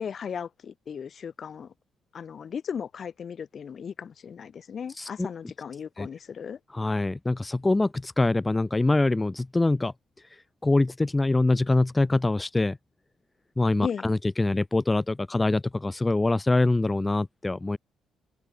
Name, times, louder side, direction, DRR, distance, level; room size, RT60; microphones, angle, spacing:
voice 1, 0.0-1.7 2.1-6.6 13.8-14.1, left 7 dB, 50° left, 5.4 m, -36 dB
voice 2, 5.0-5.3 6.0-6.1 6.7-9.9 10.6-12.8 13.6-17.8, left 2 dB, 15° left, 3.0 m, -24 dB
open air
cardioid pair, 90°, 0 cm